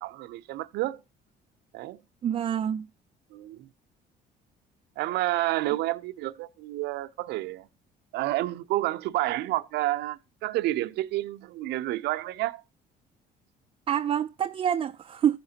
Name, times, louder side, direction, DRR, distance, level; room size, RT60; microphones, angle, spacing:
voice 1, 0.0-1.0 1.7-2.0 3.3-3.7 5.0-7.7 8.1-12.6, right 17 dB, 80° right, 0.6 m, -30 dB
voice 2, 2.2-2.9 13.9-15.4, right 9 dB, 35° right, 0.3 m, -27 dB
14.5 x 5.8 x 2.8 m
cardioid pair, 110°, 17 cm